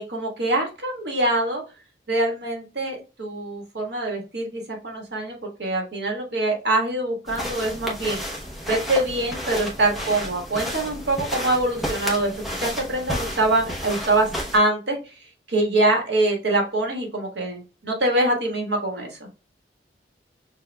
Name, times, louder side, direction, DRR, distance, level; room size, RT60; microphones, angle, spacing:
voice 1, 0.0-1.6 2.1-8.2 8.7-12.3 12.6-14.3 14.5-15.0 15.5-19.1, right 2 dB, 70° right, 1 dB, 1.4 m, -24 dB
sound 1, 7.3-14.6, equal, ahead, 0.8 m, -32 dB
6.5 x 2.4 x 2.2 m, 0.31 s
head